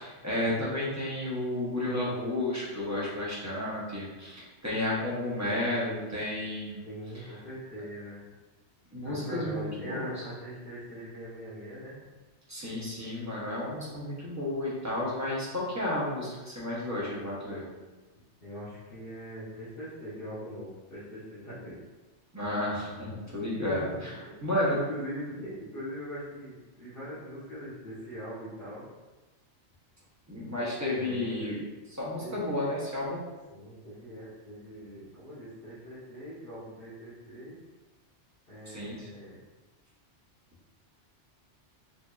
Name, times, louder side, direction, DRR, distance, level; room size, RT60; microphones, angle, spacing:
voice 1, 0.0-6.8 8.9-10.1 12.5-17.6 22.3-23.8 24.4-24.8 30.3-31.6 32.0-33.2 38.7-39.1, left 1 dB, 15° right, -6 dB, 0.8 m, -32 dB
voice 2, 6.8-8.2 9.0-12.0 18.4-21.8 23.7-23.9 24.2-28.8 30.9-31.5 32.2-32.7 33.5-37.6 38.5-39.4, equal, 50° left, -11 dB, 1.2 m, -42 dB
4.4 x 2.7 x 2.4 m, 1.2 s
omnidirectional pair, 1.2 m